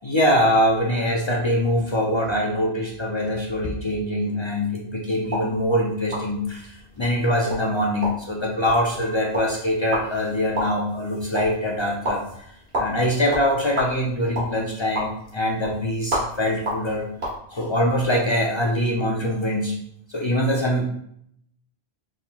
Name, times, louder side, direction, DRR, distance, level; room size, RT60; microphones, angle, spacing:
voice 1, 0.0-17.1 17.5-19.7 20.1-20.8, equal, 50° left, -1 dB, 0.3 m, -23 dB
sound 1, 5.2-17.4, equal, 80° right, 1.6 m, -32 dB
4.1 x 3.6 x 2.2 m, 0.71 s
omnidirectional pair, 1.0 m